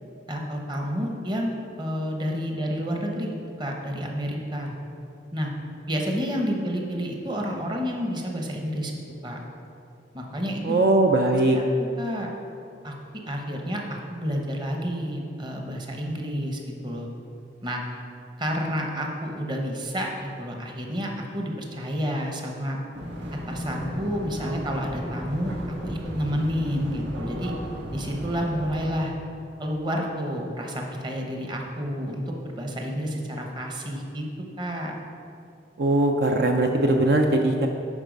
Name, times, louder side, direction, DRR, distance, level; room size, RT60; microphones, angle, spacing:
voice 1, 0.3-3.3 3.6-4.7 5.3-5.5 5.9-8.9 9.2-9.4 10.1-10.8 11.5-12.3 12.8-12.9 13.3-17.1 17.6-17.8 18.4-22.8 23.5-25.5 25.8-27.5 27.9-29.1 29.6-34.3 34.6-34.9, equal, 25° right, 1 dB, 1.0 m, -30 dB
voice 2, 10.6-11.6 35.8-37.7, right 2 dB, 60° right, 3 dB, 0.5 m, -20 dB
sound 1, 22.9-28.9, equal, 90° right, 1.3 m, -34 dB
11.0 x 4.6 x 5.2 m, 2.6 s
head